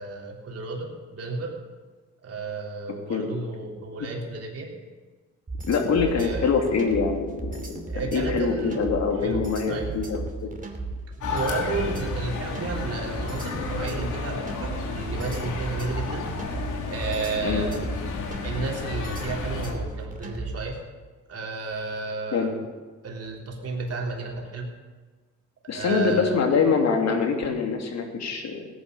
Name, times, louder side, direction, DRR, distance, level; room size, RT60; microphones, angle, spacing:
voice 1, 0.0-1.6 2.2-4.8 5.6-6.5 7.9-8.8 9.2-9.4 9.7-9.9 11.3-16.5 16.9-17.9 18.4-20.8 21.3-22.6 23.0-24.7 25.7-26.4, right 3 dB, 50° right, 0 dB, 3.6 m, -32 dB
sound 1, 5.5-20.7, right 3 dB, 25° right, 2.7 m, -34 dB
voice 2, 5.7-10.5 17.4-17.7 22.3-22.5 25.7-28.7, left 5 dB, 60° left, 3 dB, 2.9 m, -24 dB
sound 2, 11.2-19.7, left 4 dB, 80° left, 2.7 m, -32 dB
17.0 x 10.0 x 6.8 m, 1.4 s
cardioid pair, 90°, 30 cm